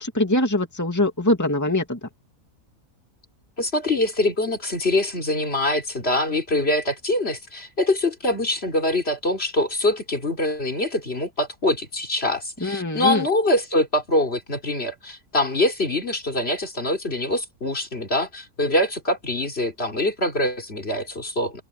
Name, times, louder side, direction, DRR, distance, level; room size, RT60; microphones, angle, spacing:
voice 1, 0.0-2.0 12.6-13.2, left 1 dB, 10° left, 2.4 m, -22 dB
voice 2, 3.6-21.6, left 1 dB, 40° left, 3.5 m, -24 dB
open air
omnidirectional pair, 1.7 m